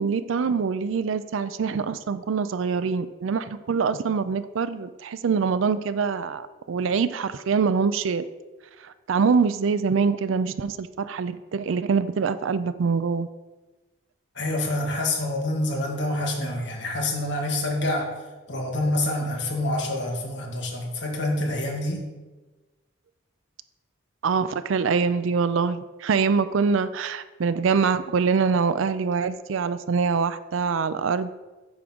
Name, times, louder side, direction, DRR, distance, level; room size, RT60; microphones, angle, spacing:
voice 1, 0.0-8.2 8.8-13.3 24.2-31.3, right 5 dB, 80° right, 13 dB, 0.4 m, -24 dB
voice 2, 14.3-18.1 18.5-22.0, left 1 dB, 60° left, 0 dB, 1.7 m, -27 dB
8.6 x 3.7 x 6.0 m, 1.2 s
head